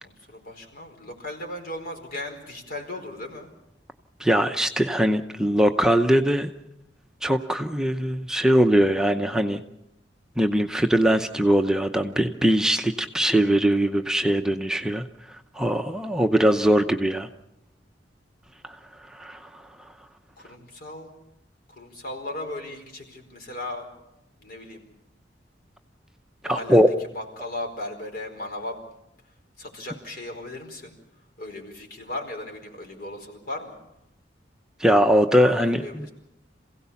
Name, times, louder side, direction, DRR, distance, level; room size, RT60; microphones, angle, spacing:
voice 1, 0.0-3.5 20.4-21.1 21.7-23.9 24.4-24.9 26.4-28.8 29.6-31.0 31.4-33.8 35.3-36.1, left 1 dB, 55° left, 3 dB, 4.6 m, -36 dB
voice 2, 4.2-6.5 7.2-9.6 10.4-15.0 15.6-17.3 18.6-18.7 19.1-19.6 26.5-26.9 34.8-35.8, equal, 5° right, 5 dB, 0.7 m, -21 dB
27.0 x 16.5 x 7.1 m, 0.86 s
head